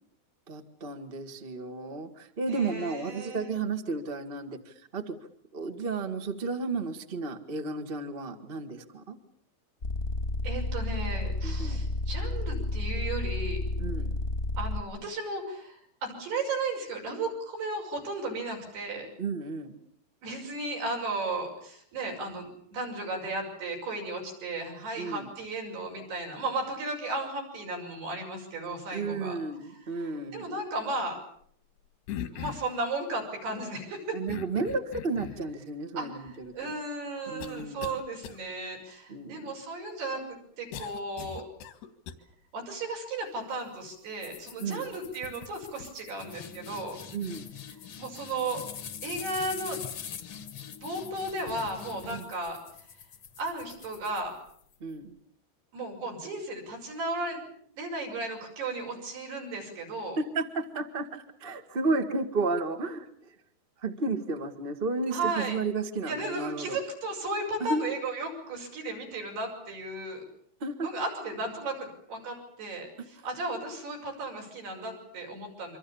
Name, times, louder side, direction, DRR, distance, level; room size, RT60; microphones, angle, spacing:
voice 1, 0.5-5.2 5.5-9.2 11.4-11.9 13.8-14.1 19.2-19.7 25.0-25.3 28.9-30.5 34.1-36.7 37.3-37.9 39.1-39.5 44.6-44.9 47.1-47.5 52.1-52.2 54.8-55.1 60.2-63.3 63.8-66.8 67.6-67.8 70.6-70.9 73.2-73.3, right 3 dB, 60° right, 9 dB, 0.5 m, -33 dB
voice 2, 2.5-3.5 10.4-13.6 14.6-19.1 20.2-29.4 29.6-31.2 32.3-34.2 36.0-40.2 40.6-41.4 42.5-47.0 48.0-48.7 49.0-49.8 50.8-52.6 53.4-54.3 55.7-57.5 57.8-60.2 65.1-65.6 66.1-70.2 70.8-75.8, right 2 dB, 80° right, 0 dB, 8.1 m, -35 dB
sound 1, 9.8-14.8, left 2 dB, 30° left, 1.1 m, -31 dB
sound 2, 32.1-32.8 34.3-35.5 36.3-36.4 37.4-38.0 38.2-38.4 40.7-42.1, left 8 dB, 85° left, 3.8 m, -39 dB
sound 3, 44.2-54.7, left 8 dB, 60° left, 1.5 m, -44 dB
27.5 x 25.0 x 7.1 m, 0.64 s
omnidirectional pair, 4.5 m